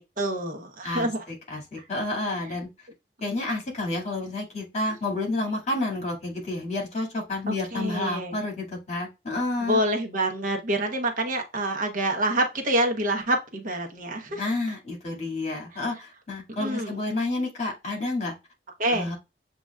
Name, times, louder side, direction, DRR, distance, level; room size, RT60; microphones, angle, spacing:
voice 1, 0.0-1.2 7.7-8.3 9.6-14.4 15.7-15.8 16.6-17.0 18.8-19.1, right 1 dB, 50° right, 3 dB, 1.0 m, -27 dB
voice 2, 0.8-2.7 3.2-9.8 14.3-18.3 18.9-19.2, left 2 dB, 40° left, 0 dB, 2.1 m, -30 dB
7.4 x 3.0 x 2.3 m, 0.25 s
head